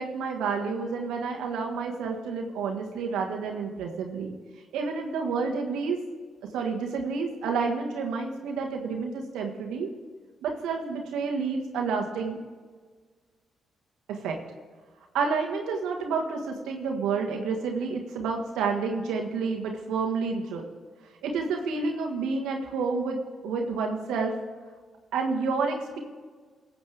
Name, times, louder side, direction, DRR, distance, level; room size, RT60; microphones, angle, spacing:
voice 1, 0.0-4.3 4.7-6.0 6.5-9.9 10.4-12.4 14.1-14.4 15.1-20.6 21.2-24.4 25.1-26.0, right 4 dB, 80° right, 2 dB, 1.5 m, -29 dB
18.5 x 7.8 x 3.4 m, 1.5 s
supercardioid pair, 50°, 0 cm